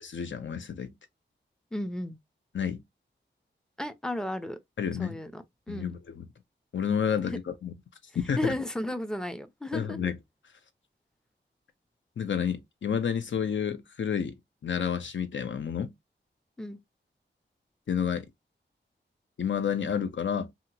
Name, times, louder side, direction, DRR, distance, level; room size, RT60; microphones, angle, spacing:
voice 1, 0.0-0.9 2.5-2.8 4.8-5.2 5.7-6.3 6.7-7.7 8.1-8.5 9.7-10.2 12.2-14.3 14.6-15.9 17.9-18.3 19.4-20.5, left 7 dB, 75° left, 0.6 m, -30 dB
voice 2, 1.7-2.2 3.8-4.6 4.9-6.0 8.4-10.1 16.6-16.8, left 1 dB, 5° left, 0.4 m, -34 dB
2.8 x 2.4 x 2.7 m
wide cardioid pair, 80°, 20 cm